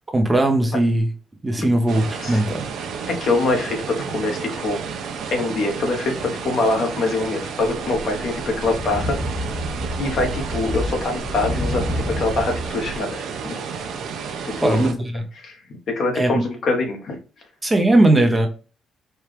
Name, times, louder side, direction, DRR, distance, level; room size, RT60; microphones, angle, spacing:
voice 1, 0.1-1.1 1.4-2.6 14.6-15.2 16.2-16.3 17.6-18.5, right 1 dB, 20° right, 0.8 m, -18 dB
sound 1, 1.9-14.9, right 6 dB, 80° right, 0.7 m, -31 dB
voice 2, 3.1-4.8 5.3-9.2 10.0-13.2 14.4-14.9 15.4-17.2, left 2 dB, 60° left, 1.1 m, -24 dB
sound 2, 7.6-13.0, left 1 dB, 20° left, 0.5 m, -29 dB
4.4 x 2.4 x 3.3 m
cardioid pair, 90°, 0 cm